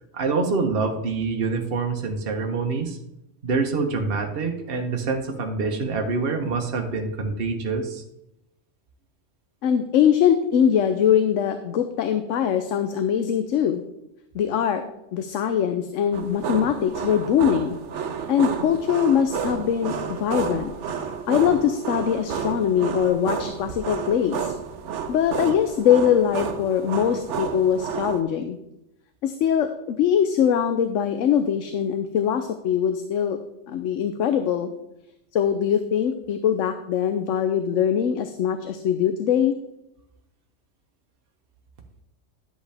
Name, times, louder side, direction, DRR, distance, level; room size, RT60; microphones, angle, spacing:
voice 1, 0.1-3.0 3.4-8.0, right 4 dB, 50° right, 2 dB, 1.2 m, -26 dB
voice 2, 9.6-13.8 14.3-14.8 15.1-17.8 18.3-20.7 21.3-24.5 25.1-28.6 29.2-33.4 33.7-34.7 35.3-39.6, left 8 dB, 80° left, 8 dB, 1.0 m, -22 dB
sound 1, 16.1-28.2, right 6 dB, 70° right, 1.1 m, -31 dB
11.5 x 8.0 x 3.4 m, 0.85 s
omnidirectional pair, 1.3 m